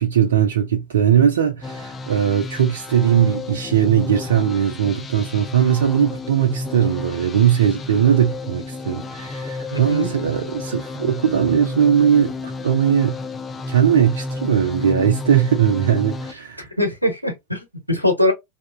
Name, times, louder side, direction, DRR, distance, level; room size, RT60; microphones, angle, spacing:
voice 1, 0.0-13.2 13.7-16.7, right 9 dB, 65° right, 0.4 m, -19 dB
sound 1, 1.6-16.3, left 2 dB, 20° left, 0.3 m, -31 dB
voice 2, 9.7-10.1 16.6-18.3, left 1 dB, 90° right, 0.8 m, -22 dB
2.7 x 2.1 x 2.4 m
figure-of-eight pair, 90°, 0 cm